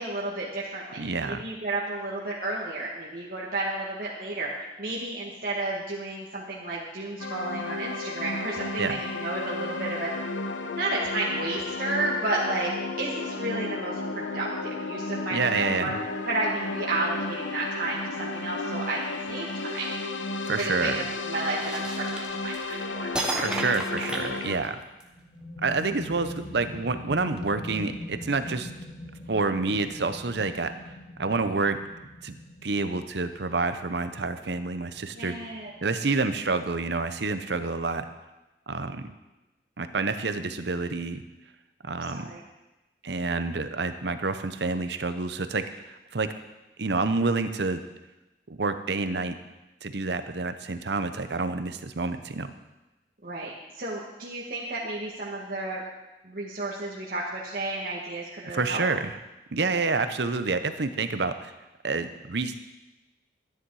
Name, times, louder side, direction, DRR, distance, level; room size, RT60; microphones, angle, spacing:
voice 1, 0.0-10.1 10.8-15.9 16.2-19.9 20.6-23.1 35.1-35.7 41.8-42.4 53.2-55.8 56.2-58.8, right 2 dB, 50° right, -6 dB, 1.8 m, -32 dB
voice 2, 1.0-1.4 8.8-9.0 15.3-15.9 20.5-21.0 23.4-24.8 25.6-28.7 29.3-30.9 31.2-31.8 32.2-32.3 32.6-35.4 35.8-38.0 38.7-39.0 39.8-41.2 41.8-42.3 43.0-46.3 46.8-47.8 48.6-49.4 49.8-52.5 58.5-59.1 59.5-61.5 61.8-62.5, right 3 dB, 65° right, 10 dB, 0.8 m, -28 dB
sound 1, 7.2-24.6, left 3 dB, 90° left, 0.9 m, -33 dB
sound 2, 21.6-22.7 23.1-25.0, right 1 dB, 5° right, 1.2 m, -32 dB
sound 3, 25.0-36.4, left 1 dB, 50° left, 2.0 m, -43 dB
13.0 x 10.0 x 4.8 m, 1.0 s
head